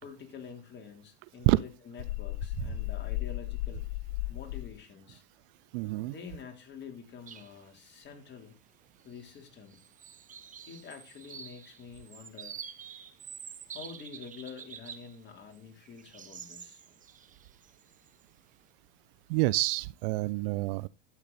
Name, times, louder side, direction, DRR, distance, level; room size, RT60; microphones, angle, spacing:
voice 1, 0.0-3.9 4.3-5.2 6.0-8.6 9.0-9.8 10.7-12.6 13.7-16.8, left 6 dB, 35° left, 3.8 m, -47 dB
sound 1, 2.0-4.8, left 18 dB, 80° left, 0.5 m, -35 dB
voice 2, 5.7-6.1 19.3-20.9, right 21 dB, 55° right, 0.4 m, -27 dB
sound 2, 7.3-7.6 7.9-8.0 9.0-9.4 9.7-15.2 15.5-18.2, right 7 dB, 25° right, 1.2 m, -48 dB
12.0 x 8.2 x 4.2 m
hypercardioid pair, 100°, 33 cm